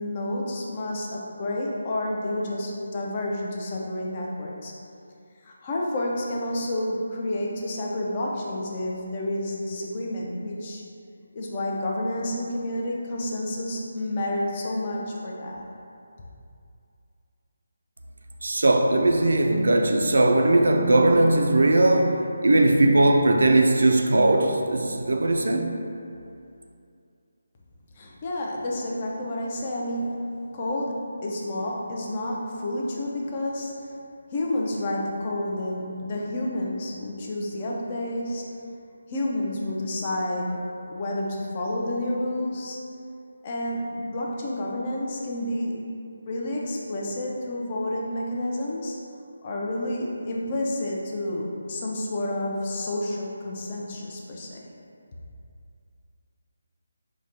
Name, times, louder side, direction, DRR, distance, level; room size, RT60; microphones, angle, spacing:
voice 1, 0.0-4.7 5.4-10.8 11.3-15.6 27.9-30.2 30.5-33.7 34.3-38.5 39.1-42.8 43.4-45.7 46.3-49.0 49.4-54.6, left 1 dB, 30° left, 0.4 m, -30 dB
voice 2, 18.4-25.7, right 2 dB, 75° right, 0.3 m, -19 dB
4.7 x 2.1 x 2.8 m
figure-of-eight pair, 165°, 0 cm